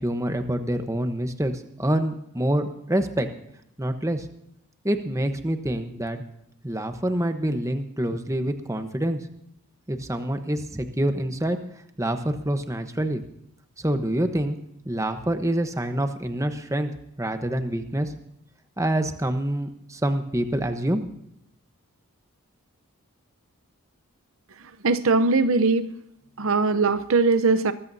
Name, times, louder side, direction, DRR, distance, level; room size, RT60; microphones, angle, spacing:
voice 1, 0.0-3.3 3.8-4.3 4.8-6.2 6.6-9.2 9.9-11.6 12.0-13.2 13.8-14.6 14.8-16.9 17.2-18.1 18.8-21.0, right 1 dB, 15° right, 7 dB, 1.0 m, -26 dB
voice 2, 24.8-25.9 26.4-27.7, right 3 dB, 65° right, 12 dB, 0.7 m, -20 dB
22.5 x 14.5 x 2.7 m, 0.75 s
head